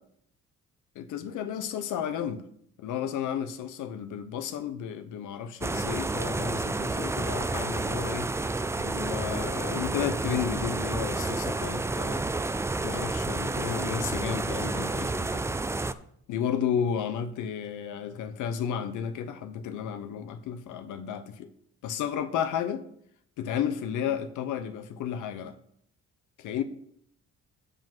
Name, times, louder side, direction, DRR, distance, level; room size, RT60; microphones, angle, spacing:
voice 1, 1.0-2.4 2.8-8.5 8.8-12.3 12.8-15.5 16.3-21.5 21.8-22.9 23.4-25.6 26.4-26.6, left 8 dB, 90° left, 0.8 m, -32 dB
sound 1, 5.6-15.9, right 3 dB, 10° right, 0.3 m, -30 dB
7.6 x 5.1 x 6.0 m
cardioid pair, 90°, 30 cm